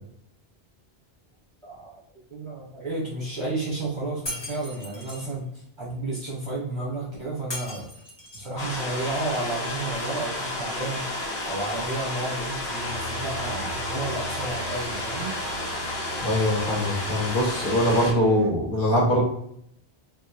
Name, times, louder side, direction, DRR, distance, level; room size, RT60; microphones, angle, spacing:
voice 1, 1.6-2.0 2.3-7.9 8.3-11.0 11.5-15.3, right 2 dB, 30° right, -6 dB, 0.7 m, -32 dB
Shatter, 4.3-5.2 7.5-8.6, left 1 dB, 30° left, 0.6 m, -37 dB
sound 1, 8.6-18.1, left 1 dB, 90° left, 1.0 m, -31 dB
sound 2, 12.8-18.5, right 3 dB, 75° right, 0.8 m, -40 dB
voice 2, 16.2-19.2, left 1 dB, 55° left, -4 dB, 1.0 m, -22 dB
2.9 x 2.3 x 2.2 m, 0.72 s
omnidirectional pair, 1.1 m